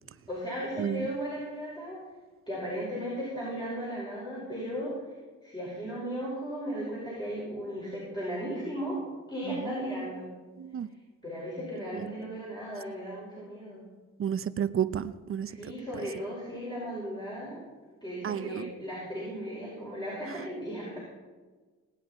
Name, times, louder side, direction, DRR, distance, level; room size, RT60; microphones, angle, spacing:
voice 1, 0.0-2.0 2.5-4.9 5.4-9.0 9.3-10.3 11.2-13.8 15.5-17.6 18.0-21.0, equal, 15° left, -7 dB, 5.4 m, -36 dB
voice 2, 0.8-1.1 10.6-10.9 14.2-15.0 15.3-15.5 18.2-18.6, right 9 dB, 45° right, 13 dB, 0.7 m, -30 dB
19.0 x 9.9 x 4.4 m, 1.4 s
cardioid pair, 90°, 30 cm